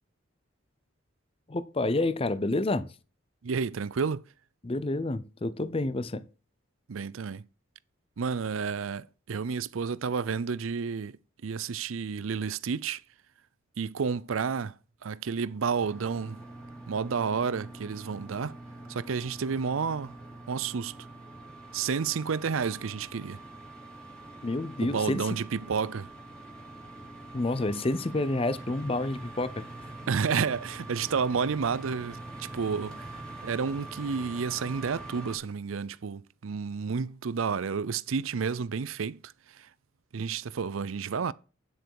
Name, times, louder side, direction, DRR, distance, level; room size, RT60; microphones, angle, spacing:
voice 1, 1.5-2.9 4.6-6.3 24.4-25.3 27.3-29.6, left 2 dB, 30° left, 0.6 m, -29 dB
voice 2, 3.4-4.2 6.9-7.4 8.2-13.0 13.8-14.7 15.0-16.4 16.9-18.6 18.9-20.2 20.5-21.0 21.7-23.4 24.8-26.1 30.1-33.2 33.4-39.7 40.1-41.3, right 5 dB, 85° right, 0.5 m, -31 dB
sound 1, 15.7-35.4, right 2 dB, 5° left, 2.6 m, -44 dB
9.2 x 7.9 x 4.7 m
head